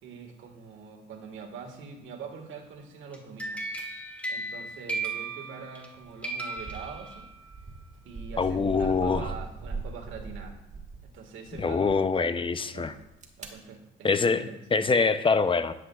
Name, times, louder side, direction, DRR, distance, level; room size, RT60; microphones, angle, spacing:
voice 1, 0.0-3.6 4.3-7.3 7.9-10.6 11.0-12.0 12.6-13.0 13.4-14.9, right 5 dB, 80° right, 2 dB, 1.7 m, -44 dB
sound 1, 3.1-5.9 6.2-7.5, right 3 dB, 5° left, 2.1 m, -35 dB
sound 2, 6.1-6.2 6.6-11.1 11.5-12.0 12.9-13.5, right 4 dB, 35° right, 1.6 m, -40 dB
voice 2, 8.4-9.2 11.6-12.9 14.0-15.7, left 4 dB, 25° left, 11 dB, 0.6 m, -24 dB
13.0 x 10.0 x 2.4 m, 0.91 s
cardioid pair, 90°, 20 cm